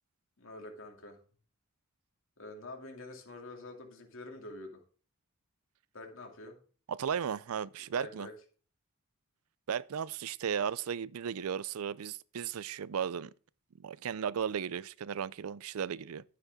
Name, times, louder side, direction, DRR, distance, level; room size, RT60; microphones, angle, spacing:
voice 1, 0.4-1.2 2.4-4.8 5.9-6.6 7.9-8.3, left 2 dB, 65° left, 2.6 m, -46 dB
voice 2, 6.9-8.3 9.7-13.3 13.8-16.2, right 7 dB, 85° right, 0.4 m, -35 dB
11.0 x 9.6 x 3.6 m
head